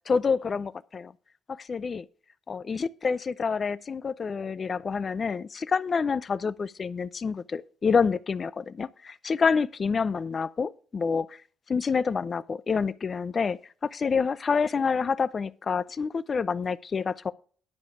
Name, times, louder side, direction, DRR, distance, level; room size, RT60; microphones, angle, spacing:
voice 1, 0.1-1.1 1.5-2.1 2.5-11.4 11.7-17.3, left 5 dB, 40° left, 0.5 m, -27 dB
10.5 x 5.1 x 7.1 m
cardioid pair, 90°, 0 cm